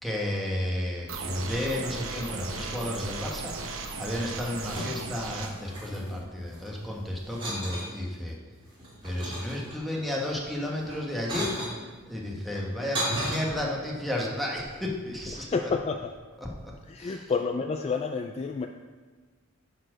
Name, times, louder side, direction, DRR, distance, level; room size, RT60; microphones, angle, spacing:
voice 1, 0.0-8.4 9.0-11.6 12.1-15.7 16.4-16.5 17.0-17.2, left 1 dB, ahead, -2 dB, 1.3 m, -32 dB
sound 1, 1.1-5.5, right 4 dB, 75° right, 0.9 m, -36 dB
sound 2, 4.1-5.1 5.4-6.8 7.3-7.9 8.5-10.0 10.8-11.8 12.5-13.4, right 1 dB, 25° right, 2.5 m, -35 dB
voice 2, 15.3-16.1 16.9-18.7, left 4 dB, 30° left, 5 dB, 0.3 m, -30 dB
9.2 x 4.5 x 6.2 m, 1.4 s
head